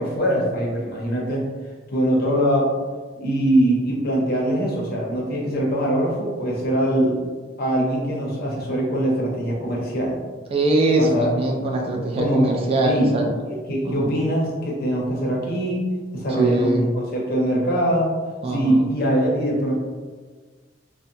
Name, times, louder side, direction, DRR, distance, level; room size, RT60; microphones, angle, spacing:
voice 1, 0.0-1.5 1.9-2.7 3.2-7.2 7.6-10.2 11.0-11.3 12.2-13.1 13.7-15.9 16.1-18.1 18.5-19.7, right 1 dB, 55° left, -3 dB, 0.7 m, -22 dB
voice 2, 10.5-13.3 13.8-14.1 16.3-16.9 18.4-18.8, right 2 dB, 30° right, 0 dB, 0.3 m, -22 dB
2.7 x 2.1 x 2.6 m, 1.4 s
head